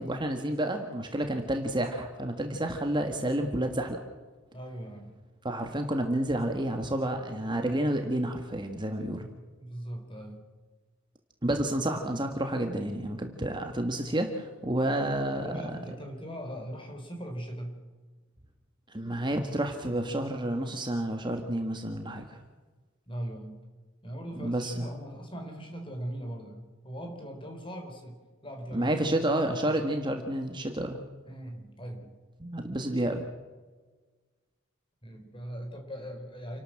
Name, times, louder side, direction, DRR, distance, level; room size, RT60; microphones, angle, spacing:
voice 1, 0.0-4.0 5.4-9.3 11.4-15.8 18.9-22.4 24.3-24.9 28.7-31.0 32.4-33.3, right 1 dB, 20° right, 4 dB, 1.6 m, -30 dB
voice 2, 4.5-5.2 9.6-10.5 15.3-17.8 23.1-23.6 24.0-28.2 28.4-29.0 31.2-32.2 35.0-36.6, right 1 dB, 25° left, 4 dB, 4.3 m, -40 dB
29.0 x 12.5 x 7.7 m, 1.3 s
head